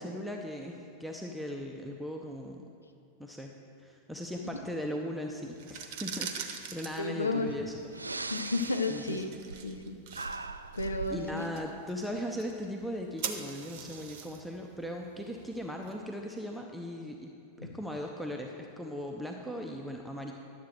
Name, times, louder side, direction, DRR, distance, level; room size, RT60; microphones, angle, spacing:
voice 1, 0.0-2.7 3.2-3.5 3.8-7.7 8.9-9.2 11.1-20.3, equal, ahead, 1 dB, 0.7 m, -38 dB
sound 1, 5.5-16.3, right 7 dB, 50° right, 0.8 m, -44 dB
voice 2, 7.0-7.5 8.3-9.3 9.6-9.9 10.7-11.5 17.6-17.7, left 3 dB, 80° left, 6 dB, 0.6 m, -32 dB
Breathing, 7.3-7.4 7.9-9.9 10.1-11.2, right 3 dB, 80° right, 0.3 m, -39 dB
11.0 x 7.6 x 4.3 m, 2.6 s
figure-of-eight pair, 90°, 0 cm